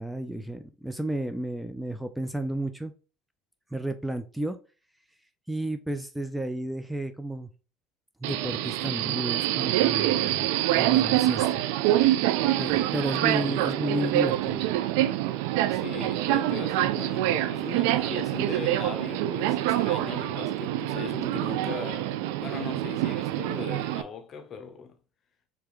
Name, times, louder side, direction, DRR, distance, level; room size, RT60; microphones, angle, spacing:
voice 1, 0.0-2.9 3.7-4.6 5.5-7.5 8.2-10.2 10.8-11.6 12.6-14.7, right 1 dB, 5° right, 0.5 m, -32 dB
Subway metro underground, 8.2-24.0, right 14 dB, 75° right, 0.3 m, -26 dB
voice 2, 15.7-24.9, left 5 dB, 45° left, 0.9 m, -39 dB
4.7 x 3.4 x 3.1 m
hypercardioid pair, 75°, 0 cm